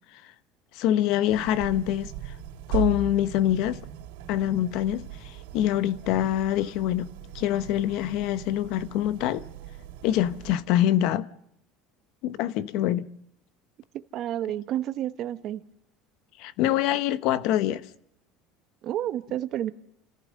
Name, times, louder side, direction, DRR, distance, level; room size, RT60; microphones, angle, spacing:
voice 1, 0.7-2.3 2.7-3.8 4.3-9.5 10.0-11.3 12.2-13.1 16.4-17.8, left 12 dB, 55° left, 1.0 m, -25 dB
sound 1, 1.3-10.6, right 10 dB, 90° right, 3.6 m, -38 dB
voice 2, 13.9-15.6 18.8-19.7, right 12 dB, 40° right, 1.1 m, -30 dB
30.0 x 14.5 x 6.5 m
cardioid pair, 170°, 0 cm